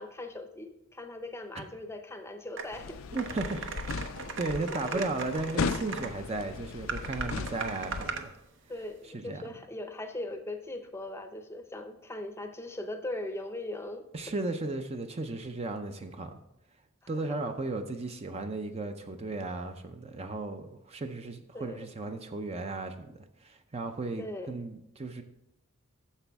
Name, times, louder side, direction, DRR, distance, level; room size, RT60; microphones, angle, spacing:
voice 1, 0.0-3.0 4.8-5.0 8.7-14.1 17.0-17.4 21.5-21.9 24.2-24.5, left 1 dB, 10° left, 0.6 m, -40 dB
sound 1, 2.6-2.7 3.1-6.1 6.9-8.3, right 5 dB, 60° right, 0.8 m, -38 dB
sound 2, 2.7-8.1, left 5 dB, 70° left, 0.4 m, -37 dB
voice 2, 3.1-3.7 4.4-8.3 9.1-9.4 14.1-16.4 17.1-25.2, right 2 dB, 30° right, 0.5 m, -35 dB
9.9 x 7.0 x 3.5 m
head